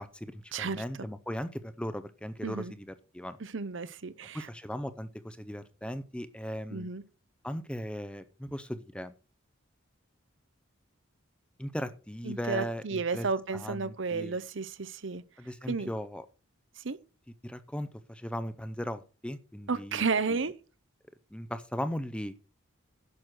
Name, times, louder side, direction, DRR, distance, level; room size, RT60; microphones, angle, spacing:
voice 1, 0.0-3.4 4.3-6.9 7.4-9.1 11.6-13.3 13.5-14.4 15.4-16.3 17.4-20.4 21.3-22.4, equal, 5° left, 0.6 m, -38 dB
voice 2, 0.5-0.8 2.4-2.7 3.4-4.5 6.7-7.0 12.2-15.2 15.7-15.9 16.8-17.0 19.7-20.5, right 4 dB, 65° right, 0.7 m, -32 dB
10.5 x 6.3 x 6.4 m
head